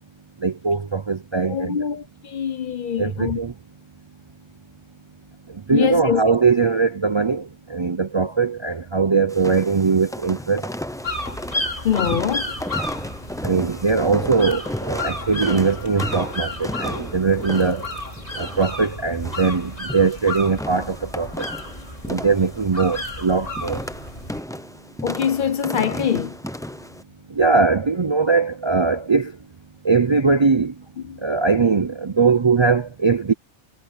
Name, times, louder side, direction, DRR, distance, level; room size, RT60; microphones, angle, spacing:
voice 1, 0.4-1.8 3.0-3.5 5.7-10.6 13.4-17.9 18.4-21.4 22.1-23.8 27.4-29.3 29.8-30.7 31.2-33.3, right 4 dB, 35° right, 0.5 m, -20 dB
voice 2, 1.5-3.4 5.7-6.2 11.8-12.5 25.0-26.4 31.0-31.2, left 8 dB, 50° left, 0.8 m, -24 dB
sound 1, 9.3-27.0, left 1 dB, 5° left, 0.6 m, -34 dB
sound 2, 11.0-24.4, left 2 dB, 35° left, 5.5 m, -32 dB
omnidirectional pair, 1.1 m